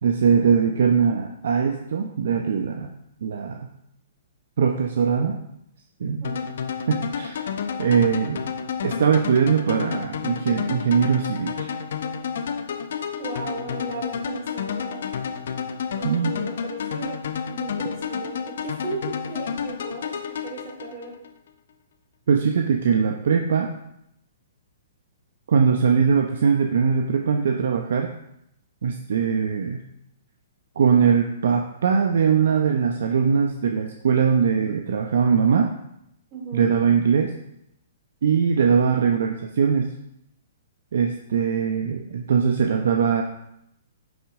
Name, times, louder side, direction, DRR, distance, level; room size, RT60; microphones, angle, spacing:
voice 1, 0.0-2.9 3.2-3.7 4.6-5.4 6.0-6.2 6.9-7.5 7.8-8.4 8.8-11.7 16.0-16.3 22.3-23.7 25.5-28.1 28.8-29.8 30.8-35.7 36.5-37.3 38.2-39.9 40.9-43.2, right 6 dB, 65° right, 3 dB, 0.8 m, -21 dB
sound 1, 6.2-21.3, left 7 dB, 60° left, 0.8 m, -30 dB
voice 2, 6.2-6.5 13.2-15.0 16.0-17.2 17.5-21.1 36.3-36.7, right 3 dB, 35° right, -1 dB, 3.3 m, -36 dB
10.5 x 7.2 x 3.6 m, 0.77 s
figure-of-eight pair, 120°, 0 cm